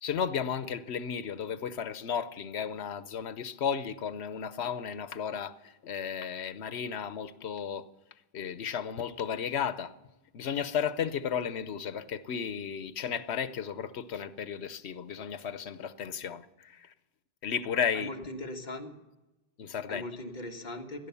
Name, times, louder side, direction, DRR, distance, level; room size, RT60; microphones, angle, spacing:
voice 1, 0.0-7.8 8.3-9.9 10.3-16.9 17.4-18.1 19.6-20.0, left 7 dB, 90° left, 1.1 m, -34 dB
voice 2, 17.9-18.9 19.9-21.1, left 1 dB, 45° left, 1.8 m, -39 dB
17.5 x 11.5 x 7.0 m
omnidirectional pair, 1.1 m